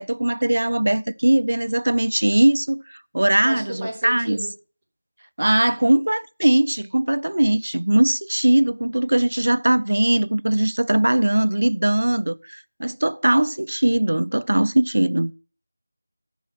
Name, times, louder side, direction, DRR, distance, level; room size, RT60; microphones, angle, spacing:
voice 1, 0.0-4.4 5.4-15.3, right 1 dB, 85° right, 0.5 m, -20 dB
voice 2, 3.4-4.5, right 1 dB, 10° right, 2.1 m, -32 dB
10.0 x 6.3 x 5.8 m
figure-of-eight pair, 180°, 0 cm